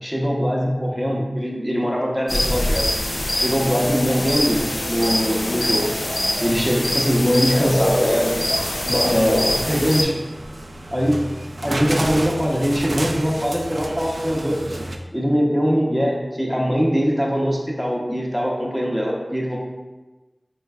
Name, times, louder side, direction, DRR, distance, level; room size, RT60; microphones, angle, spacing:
voice 1, 0.0-2.9 3.3-4.6 4.9-5.9 6.4-8.4 8.9-9.4 9.7-10.1 10.9-11.2 11.6-14.8 15.1-19.6, equal, ahead, -3 dB, 0.7 m, -22 dB
sound 1, 2.3-10.0, left 1 dB, 85° left, 0.6 m, -23 dB
sound 2, 8.5-15.0, right 1 dB, 65° right, 0.3 m, -31 dB
4.4 x 3.1 x 2.3 m, 1.1 s
wide cardioid pair, 45°, 0 cm